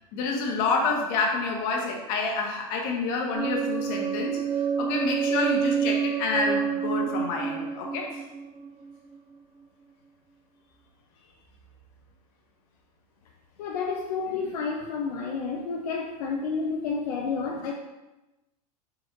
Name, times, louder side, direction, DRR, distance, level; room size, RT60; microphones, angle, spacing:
voice 1, 0.1-8.2, left 3 dB, 55° left, 1 dB, 1.2 m, -28 dB
sound 1, 3.3-9.2, right 7 dB, 30° right, 0.3 m, -28 dB
voice 2, 13.6-17.7, left 4 dB, 75° left, 1 dB, 0.6 m, -30 dB
5.0 x 4.3 x 2.5 m, 1.0 s
hypercardioid pair, 115°, 20 cm